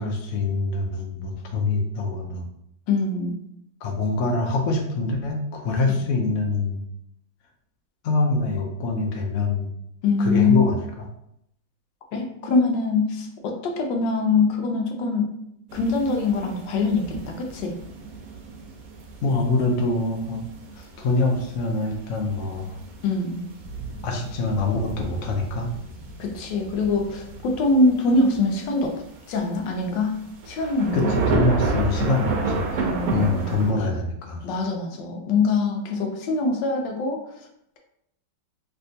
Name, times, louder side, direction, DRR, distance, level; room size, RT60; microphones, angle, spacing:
voice 1, 0.0-2.4 3.8-6.8 8.0-9.7 10.2-10.8 19.2-20.4 20.8-22.7 24.0-25.7 30.9-34.5, left 3 dB, 65° left, 1 dB, 0.8 m, -25 dB
voice 2, 2.9-3.4 10.0-10.7 12.1-15.4 15.7-17.7 23.0-23.5 26.2-28.9 29.3-31.1 32.8-33.5 34.4-37.2, left 3 dB, 80° left, 2 dB, 1.3 m, -23 dB
sound 1, 15.7-33.7, right 3 dB, 65° right, 1.0 m, -32 dB
3.3 x 2.8 x 2.7 m, 0.76 s
omnidirectional pair, 1.9 m